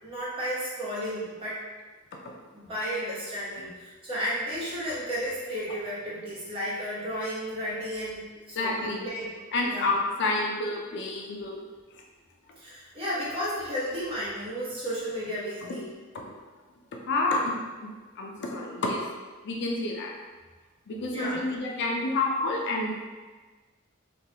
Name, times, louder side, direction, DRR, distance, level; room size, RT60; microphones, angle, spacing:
voice 1, 0.0-1.6 2.5-9.3 9.7-9.9 12.6-15.9 21.1-21.4, equal, 25° right, -8 dB, 0.9 m, -33 dB
voice 2, 8.5-9.1 9.5-11.6 17.0-19.1 19.4-20.1 20.9-23.1, left 2 dB, 55° left, 0 dB, 0.4 m, -29 dB
3.3 x 2.3 x 2.8 m, 1.3 s
head